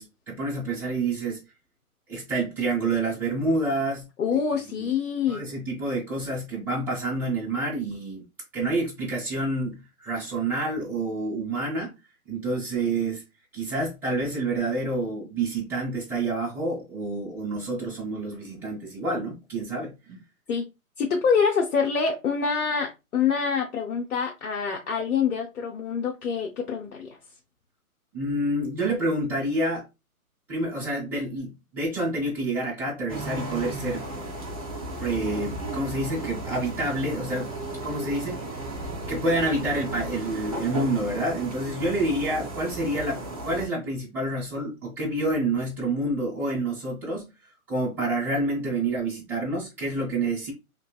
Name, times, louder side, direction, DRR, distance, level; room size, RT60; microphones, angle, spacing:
voice 1, 0.0-1.4 2.1-4.1 4.3-4.4 4.8-4.9 5.3-8.2 8.5-11.9 12.3-13.2 13.5-20.2 28.1-29.8 30.5-34.1 35.0-37.5 37.8-38.4 39.1-47.3 47.7-50.5, right 2 dB, 5° right, 0.7 m, -28 dB
voice 2, 4.2-5.4 20.5-20.6 21.0-27.2, left 6 dB, 80° left, 0.7 m, -26 dB
sound 1, 33.1-43.7, right 2 dB, 25° right, 0.4 m, -35 dB
2.9 x 2.7 x 2.3 m
hypercardioid pair, 145°, 43 cm